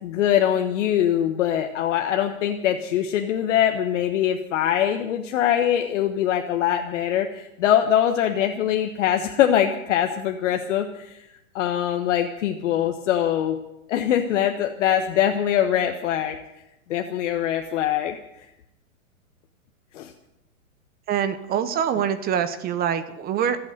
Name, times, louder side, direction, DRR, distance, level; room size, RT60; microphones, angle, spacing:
voice 1, 0.0-11.3 11.5-13.6 13.9-16.4 16.9-18.2 19.9-20.1, left 10 dB, 60° left, 5 dB, 1.3 m, -23 dB
voice 2, 21.1-23.6, right 8 dB, 20° right, 12 dB, 0.8 m, -24 dB
25.0 x 8.6 x 6.5 m, 0.86 s
hypercardioid pair, 120°, 42 cm